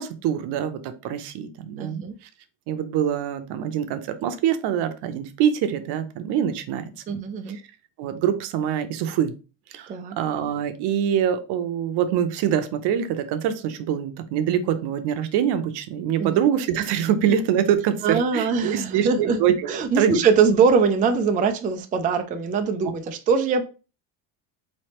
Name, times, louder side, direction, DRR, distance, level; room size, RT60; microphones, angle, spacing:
voice 1, 0.0-2.0 2.7-6.9 7.5-7.6 8.0-9.3 9.7-19.7 20.0-20.2 22.8-22.9, right 9 dB, 75° right, 9 dB, 0.7 m, -24 dB
voice 2, 1.8-2.1 7.1-7.6 9.9-10.1 16.2-16.4 18.0-19.4 19.7-23.6, right 5 dB, 20° right, 6 dB, 0.3 m, -22 dB
4.1 x 3.2 x 2.9 m, 0.32 s
cardioid pair, 135°, 41 cm